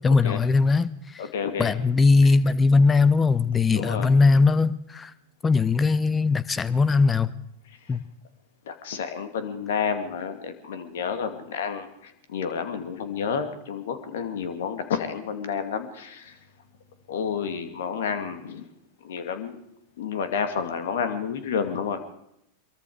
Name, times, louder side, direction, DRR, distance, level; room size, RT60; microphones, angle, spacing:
voice 1, 0.0-1.3 1.6-5.1 5.4-7.3 7.9-8.0, left 4 dB, 15° left, 18 dB, 0.9 m, -20 dB
voice 2, 1.2-1.7 3.7-4.1 8.7-16.4 17.1-18.6 19.0-19.6 20.0-22.0, left 6 dB, 60° left, 8 dB, 2.4 m, -30 dB
24.5 x 22.5 x 5.0 m, 0.80 s
figure-of-eight pair, 90°, 0 cm